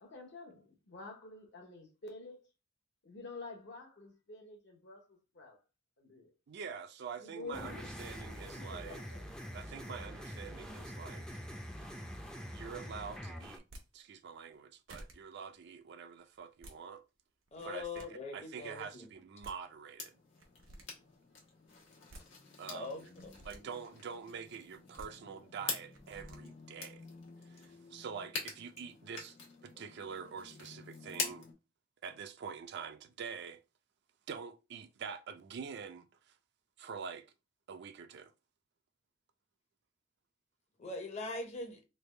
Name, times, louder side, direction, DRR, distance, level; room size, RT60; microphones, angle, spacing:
voice 1, 0.0-2.4 3.0-5.6 6.0-6.3 7.2-7.9 8.3-9.2, left 3 dB, 60° left, 0.9 m, -49 dB
voice 2, 6.5-9.0 9.5-11.4 12.5-13.6 13.9-17.0 17.6-20.1 22.6-23.0 23.4-27.1 27.5-29.4 29.6-31.5 32.0-33.6 34.3-36.3 36.8-37.3 37.7-38.3, right 6 dB, 60° right, 0.4 m, -46 dB
sound 1, 7.5-13.6, equal, 5° left, 0.4 m, -45 dB
sound 2, 13.7-13.9 14.5-14.6 14.9-15.2 16.4-16.8 17.5-18.1 19.1-19.2 19.4-19.6 20.4-20.9 21.8-22.3 23.1-23.6 24.7-25.1 25.9-26.4, right 1 dB, 90° right, 0.8 m, -52 dB
voice 3, 17.5-19.1 22.7-23.3 40.8-41.8, left 2 dB, 35° left, 0.7 m, -42 dB
sound 3, 20.0-31.5, left 4 dB, 85° left, 1.1 m, -45 dB
3.3 x 2.3 x 3.2 m
head